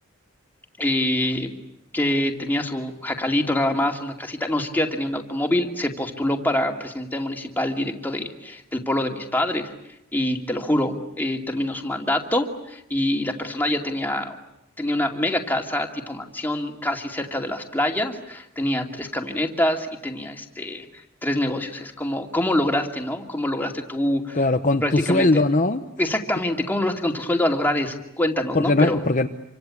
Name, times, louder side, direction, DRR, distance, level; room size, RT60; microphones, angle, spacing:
voice 1, 0.8-1.5 1.9-9.7 10.1-14.4 14.8-20.9 21.2-24.4 24.8-25.4 26.0-29.0, left 1 dB, 10° left, 3 dB, 2.5 m, -25 dB
voice 2, 24.3-25.8 28.5-29.3, left 2 dB, 35° left, 5 dB, 1.0 m, -20 dB
27.5 x 25.5 x 8.5 m, 0.85 s
head